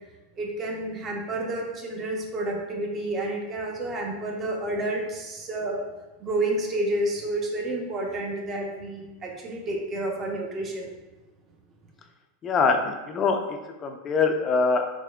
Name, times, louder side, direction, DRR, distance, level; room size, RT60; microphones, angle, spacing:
voice 1, 0.4-5.8 6.2-10.9, right 1 dB, 25° right, 0 dB, 0.6 m, -30 dB
voice 2, 12.4-13.4 13.8-14.9, left 4 dB, 25° left, 5 dB, 0.3 m, -23 dB
3.5 x 3.5 x 2.3 m, 1.1 s
supercardioid pair, 145°, 0 cm